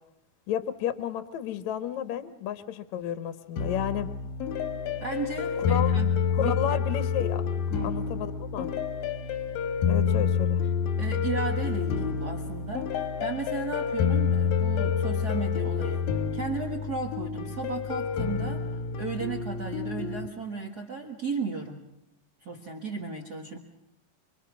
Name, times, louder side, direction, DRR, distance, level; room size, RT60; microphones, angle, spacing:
voice 1, 0.5-4.1 5.6-6.0 6.3-7.4 7.8-8.7 9.9-10.6, left 10 dB, 70° left, 13 dB, 1.9 m, -32 dB
sound 1, 3.6-20.3, left 6 dB, 85° left, 2.8 m, -28 dB
voice 2, 5.0-6.1 6.4-6.6 7.7-8.0 11.0-16.0 16.3-18.6 19.0-21.8 22.4-23.6, right 4 dB, 60° right, 1 dB, 1.0 m, -34 dB
25.5 x 23.0 x 6.1 m, 0.85 s
omnidirectional pair, 4.0 m